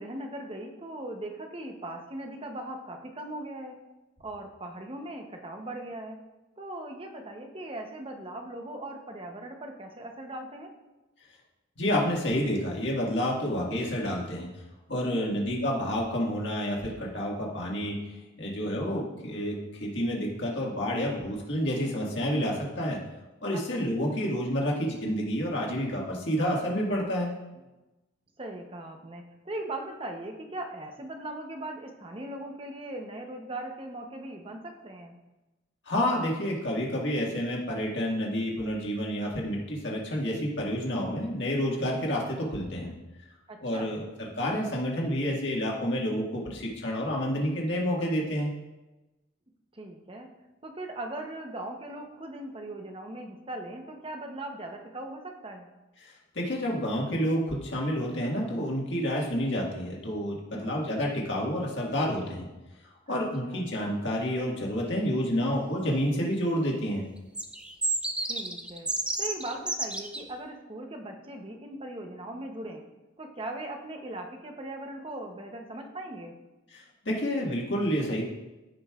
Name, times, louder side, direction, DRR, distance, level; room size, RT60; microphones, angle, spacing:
voice 1, 0.0-3.8 4.2-6.2 6.6-10.7 15.1-15.4 23.5-23.6 28.4-35.1 43.5-44.0 49.7-50.3 50.6-55.7 60.5-60.7 63.1-63.2 63.4-63.7 68.2-68.9 69.2-72.8 73.2-76.3, right 1 dB, 25° right, 3 dB, 0.8 m, -39 dB
voice 2, 11.8-14.5 14.9-18.0 18.4-23.0 23.4-27.3 35.9-42.9 43.6-48.5 56.4-62.5 63.1-67.0 76.7-78.2, equal, 60° left, -2 dB, 1.8 m, -29 dB
sound 1, 67.3-70.2, right 2 dB, 5° right, 0.4 m, -30 dB
15.0 x 5.4 x 2.4 m, 1.0 s
head